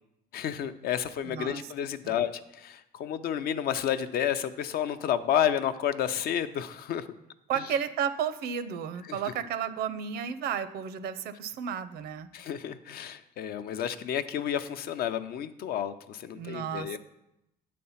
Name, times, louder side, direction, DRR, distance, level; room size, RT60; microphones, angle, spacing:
voice 1, 0.3-7.1 9.1-9.2 12.3-17.0, left 9 dB, 65° left, 11 dB, 0.5 m, -31 dB
voice 2, 1.2-1.7 2.0-2.2 7.5-12.3 16.3-17.0, right 8 dB, 70° right, 13 dB, 0.6 m, -33 dB
8.6 x 4.2 x 5.6 m, 0.86 s
cardioid pair, 110°, 17 cm